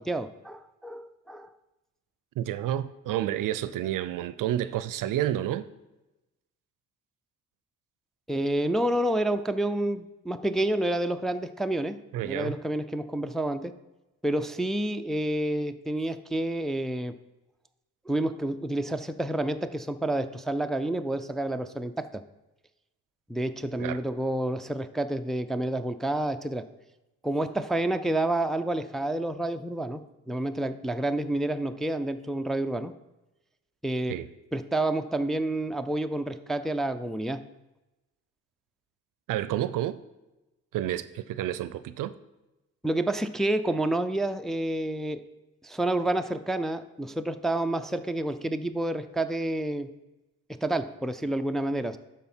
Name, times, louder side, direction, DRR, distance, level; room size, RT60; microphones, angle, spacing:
voice 1, 0.0-1.5 8.3-12.0 12.2-13.8 14.2-17.1 18.1-22.2 23.3-26.7 27.2-32.9 33.8-34.2 34.5-37.4 42.8-45.2 45.6-49.9 50.6-52.0, right 1 dB, ahead, 0.4 m, -29 dB
voice 2, 2.4-5.7 12.1-12.5 23.8-24.0 34.1-34.3 39.3-40.0 40.7-42.1, right 12 dB, 70° right, 0.5 m, -30 dB
11.5 x 4.3 x 4.4 m
supercardioid pair, 65°, 33 cm